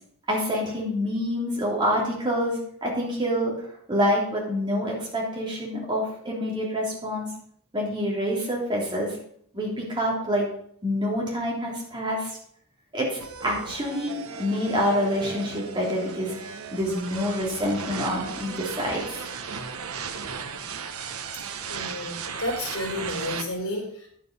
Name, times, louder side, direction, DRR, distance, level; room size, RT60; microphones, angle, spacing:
voice 1, 0.3-3.5 3.9-7.3 7.7-9.2 9.5-10.5 10.8-12.4 12.9-16.3 16.7-19.2, equal, 20° right, -4 dB, 3.3 m, -27 dB
sound 1, 13.2-23.4, right 6 dB, 85° right, 1.0 m, -36 dB
voice 2, 21.7-24.1, left 1 dB, 70° left, 0 dB, 4.4 m, -31 dB
10.0 x 7.5 x 5.4 m, 0.65 s
head